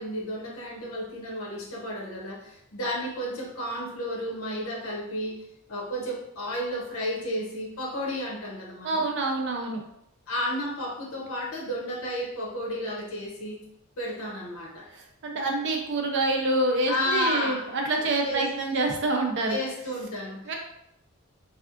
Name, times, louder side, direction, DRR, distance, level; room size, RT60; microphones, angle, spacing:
voice 1, 0.0-9.0 10.3-13.6 14.0-14.9 16.9-17.7 18.0-18.5 19.5-20.5, left 1 dB, 75° left, -1 dB, 0.8 m, -32 dB
voice 2, 8.8-9.8 14.9-19.6 20.5-20.6, right 2 dB, 60° right, 1 dB, 0.6 m, -26 dB
3.4 x 2.4 x 2.4 m, 0.77 s
head